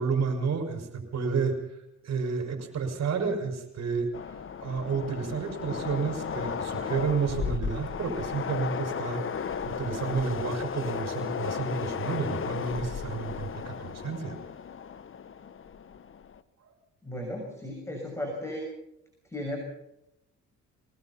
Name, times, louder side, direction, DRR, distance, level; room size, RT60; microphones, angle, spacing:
voice 1, 0.0-1.6 2.0-9.2 9.7-14.4, right 5 dB, 60° right, 5 dB, 5.7 m, -31 dB
Train, 4.1-16.4, left 7 dB, 45° left, 1.1 m, -35 dB
voice 2, 17.0-18.6 19.3-19.6, left 1 dB, 10° left, 0 dB, 6.5 m, -35 dB
23.5 x 19.0 x 5.8 m, 0.83 s
cardioid pair, 90°, 30 cm